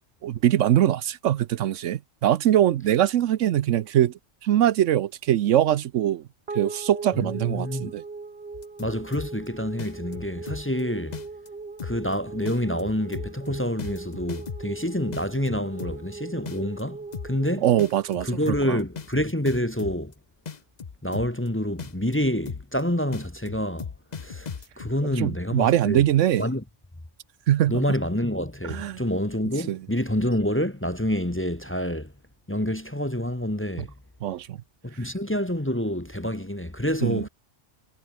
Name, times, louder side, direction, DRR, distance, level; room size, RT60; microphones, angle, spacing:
voice 1, 0.2-4.1 4.4-6.2 6.5-8.0 17.6-18.3 18.6-18.8 25.2-26.5 27.5-27.8 28.6-29.0 29.7-29.8 34.2-34.6 37.0-37.2, right 11 dB, 75° right, 1.0 m, -22 dB
sound 1, 6.5-19.0, right 4 dB, 50° right, 2.4 m, -40 dB
voice 2, 7.1-7.9 8.8-11.2 11.8-17.0 17.2-17.7 18.2-20.1 21.0-23.9 24.2-26.0 26.4-26.6 27.7-32.1 32.5-33.9 34.8-37.3, equal, 10° left, 1.1 m, -27 dB
sound 2, 8.5-9.5 9.8-10.8 11.1-11.5 11.8-12.1 12.5-14.8 15.1-16.1 16.5-16.8 17.1-17.5 17.8-20.1 20.5-21.5 21.8-22.1 22.5-22.8 23.1-24.9, left 6 dB, 35° left, 0.9 m, -37 dB
omnidirectional pair, 1.3 m